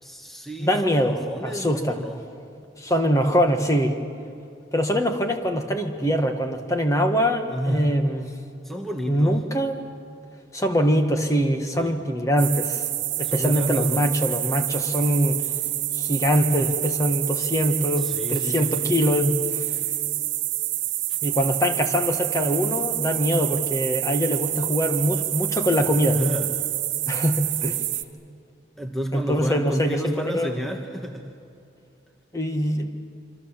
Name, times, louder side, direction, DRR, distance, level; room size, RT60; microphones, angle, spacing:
voice 1, 0.0-2.2 7.5-7.9 8.6-9.3 11.8-12.0 13.2-14.1 17.9-19.0 25.8-25.9 26.1-26.7 28.8-31.3, equal, ahead, 2 dB, 1.4 m, -31 dB
voice 2, 0.6-2.0 2.8-4.0 4.7-8.3 9.1-9.8 10.5-12.9 13.2-15.4 15.9-19.7 21.2-26.2 27.1-27.8 29.1-30.5 32.3-32.9, equal, 15° left, 5 dB, 1.6 m, -23 dB
sound 1, 12.4-28.0, right 15 dB, 85° right, 1.0 m, -27 dB
26.0 x 25.5 x 7.4 m, 2.5 s
head